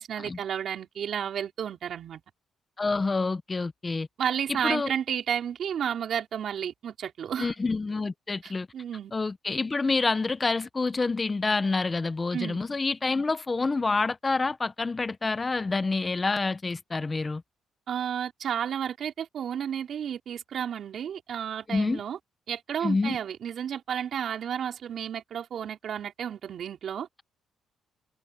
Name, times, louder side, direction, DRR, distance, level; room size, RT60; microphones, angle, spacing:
voice 1, 0.0-2.2 4.2-7.5 8.4-9.1 12.3-12.6 17.9-22.2 22.5-27.1, right 8 dB, 60° right, 5.0 m, -32 dB
voice 2, 2.8-4.1 4.6-4.9 7.4-8.7 9.1-17.4 21.7-22.0 22.8-23.2, left 3 dB, 25° left, 1.0 m, -27 dB
cardioid pair, 90°, 0 cm